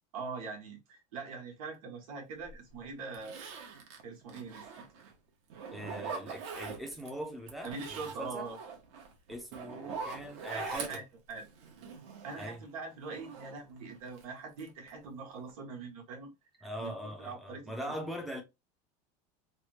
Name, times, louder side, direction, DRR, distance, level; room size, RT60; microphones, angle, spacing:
voice 1, 0.1-3.4 4.0-4.8 7.6-8.6 10.5-11.5 12.2-16.3 16.6-17.9, right 4 dB, 90° right, 1.4 m, -43 dB
Zipper (clothing), 2.5-2.6 3.1-5.1 5.5-7.1 7.5-12.6 13.0-14.2 14.6-15.1 15.4-15.5, right 5 dB, 55° right, 1.0 m, -43 dB
voice 2, 5.7-8.5 9.3-11.0 12.3-12.6 16.6-18.4, equal, ahead, 0.6 m, -41 dB
3.3 x 2.2 x 3.1 m
supercardioid pair, 170°, 18 cm